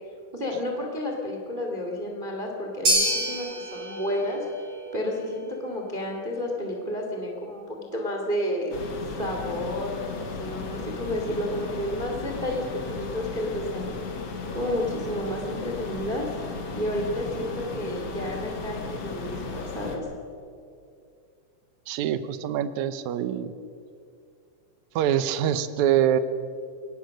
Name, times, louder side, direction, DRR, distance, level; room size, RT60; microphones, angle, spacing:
voice 1, 0.3-4.4 4.9-8.7 9.2-13.9 14.5-16.2 16.7-20.1, left 1 dB, 15° right, 1 dB, 2.1 m, -31 dB
sound 1, 2.9-11.2, right 1 dB, 55° right, 6.8 m, -32 dB
sound 2, 8.7-20.0, left 4 dB, 50° left, 2.7 m, -35 dB
voice 2, 21.9-23.5 25.0-26.2, right 10 dB, 70° right, 12 dB, 2.1 m, -24 dB
22.5 x 19.0 x 6.4 m, 2.4 s
omnidirectional pair, 3.8 m